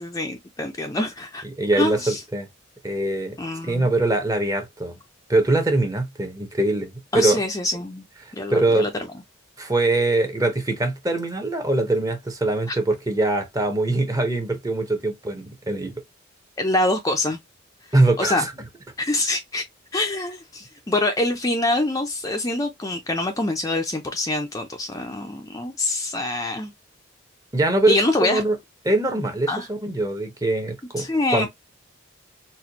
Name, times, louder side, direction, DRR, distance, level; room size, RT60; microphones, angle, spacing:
voice 1, 0.0-1.4 1.8-2.2 3.4-3.9 7.1-8.0 8.3-8.9 12.7-12.8 16.6-17.4 18.2-18.4 19.0-19.6 19.9-26.7 27.9-28.4 29.5-29.7 31.0-31.5, left 2 dB, 15° left, 0.5 m, -25 dB
voice 2, 1.6-2.5 2.8-3.4 3.6-4.9 5.3-7.4 8.2-8.9 9.6-15.9 17.9-18.5 27.5-28.6 28.8-31.1 31.3-31.5, right 2 dB, 20° right, 0.7 m, -22 dB
4.2 x 2.2 x 2.8 m
head